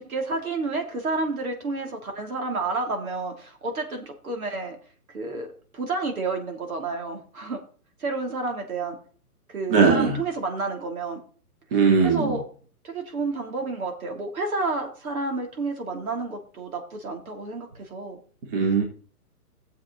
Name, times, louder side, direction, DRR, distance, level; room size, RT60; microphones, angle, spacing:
voice 1, 0.0-4.8 5.1-5.5 5.7-7.6 8.0-9.0 9.5-11.2 12.0-12.4 12.8-18.2, right 3 dB, 65° right, 3 dB, 3.2 m, -30 dB
voice 2, 9.7-10.2 11.7-12.4 18.5-18.8, right 5 dB, 35° right, 1 dB, 2.5 m, -19 dB
16.5 x 7.5 x 4.0 m, 0.43 s
hypercardioid pair, 160°, 47 cm